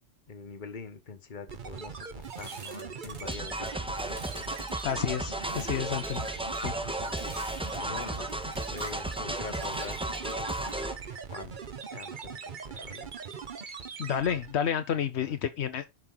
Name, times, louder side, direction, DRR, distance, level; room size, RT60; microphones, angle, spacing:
voice 1, 0.3-4.2 6.8-11.6 11.9-13.1 15.2-15.3, left 5 dB, 45° left, 1.3 m, -45 dB
sound 1, 1.5-14.6, right 6 dB, 50° right, 1.0 m, -41 dB
sound 2, 1.5-11.9, right 3 dB, 80° right, 2.1 m, -52 dB
sound 3, 3.3-11.0, right 1 dB, 5° right, 0.5 m, -34 dB
voice 2, 4.8-6.2 6.6-6.7 14.0-15.9, left 8 dB, 80° left, 1.0 m, -30 dB
11.0 x 4.3 x 3.9 m
omnidirectional pair, 1.1 m